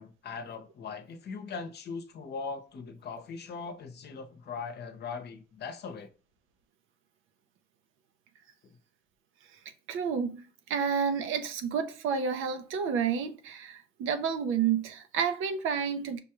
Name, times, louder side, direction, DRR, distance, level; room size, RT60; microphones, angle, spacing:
voice 1, 0.0-6.1 8.6-8.8, left 5 dB, 55° left, 0.8 m, -40 dB
voice 2, 9.9-16.2, right 7 dB, 85° right, 0.7 m, -30 dB
5.3 x 2.3 x 2.9 m
cardioid pair, 90°, 20 cm